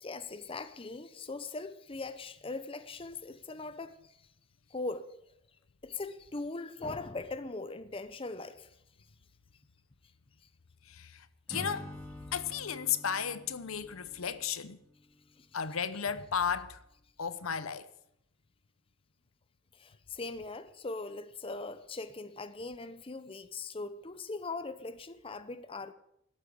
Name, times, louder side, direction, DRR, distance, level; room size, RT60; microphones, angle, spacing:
voice 1, 0.0-4.2 4.7-5.1 5.8-8.7 15.4-15.5 19.7-25.9, left 3 dB, 25° left, 0.7 m, -40 dB
voice 2, 10.9-11.9 12.3-14.8 15.5-16.8 17.2-17.9, left 7 dB, 80° left, 0.8 m, -34 dB
Acoustic guitar / Strum, 11.5-15.4, left 1 dB, 5° left, 2.1 m, -48 dB
12.5 x 8.8 x 8.6 m
head